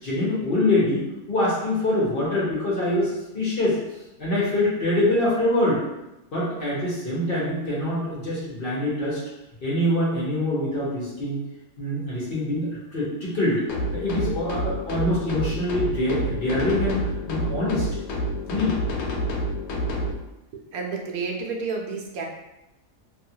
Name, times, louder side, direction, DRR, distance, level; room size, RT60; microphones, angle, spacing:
voice 1, 0.0-3.8 4.2-5.8 6.3-9.2 9.6-11.4 11.8-13.6 13.9-17.9 18.5-18.7, left 1 dB, 45° left, -7 dB, 0.9 m, -24 dB
sound 1, 13.7-20.1, equal, 80° left, 1.0 m, -28 dB
voice 2, 20.5-22.2, right 4 dB, 85° right, 1 dB, 1.1 m, -30 dB
2.7 x 2.3 x 2.7 m, 0.94 s
omnidirectional pair, 1.5 m